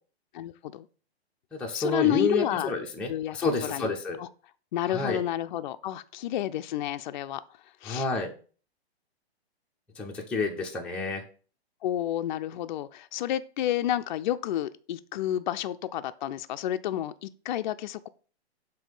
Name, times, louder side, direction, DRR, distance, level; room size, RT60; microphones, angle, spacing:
voice 1, 0.3-0.9 1.7-2.7 3.1-4.3 4.7-7.4 7.8-8.1 11.8-18.1, left 12 dB, 45° left, 0.5 m, -30 dB
voice 2, 1.6-4.2 4.9-5.2 7.9-8.3 10.0-11.2, left 3 dB, 5° left, 0.6 m, -29 dB
7.3 x 2.8 x 5.4 m
hypercardioid pair, 140°, 32 cm